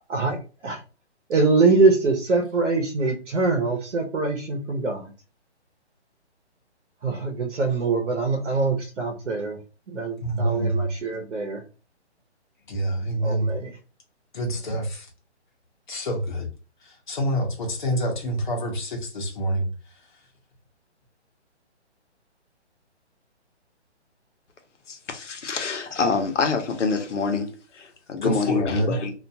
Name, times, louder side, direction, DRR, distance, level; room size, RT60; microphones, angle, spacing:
voice 1, 0.1-0.8 1.3-5.1 7.0-9.6 9.9-11.6 13.2-13.7, right 3 dB, 90° right, 0.9 m, -23 dB
voice 2, 10.2-10.9 12.7-13.5 14.3-15.1 15.9-16.5 16.8-20.2 26.2-26.4 28.2-29.0, right 1 dB, 45° left, 0.9 m, -27 dB
voice 3, 24.9-29.1, left 4 dB, 85° left, 0.9 m, -26 dB
2.5 x 2.3 x 2.6 m
hypercardioid pair, 170°, 35 cm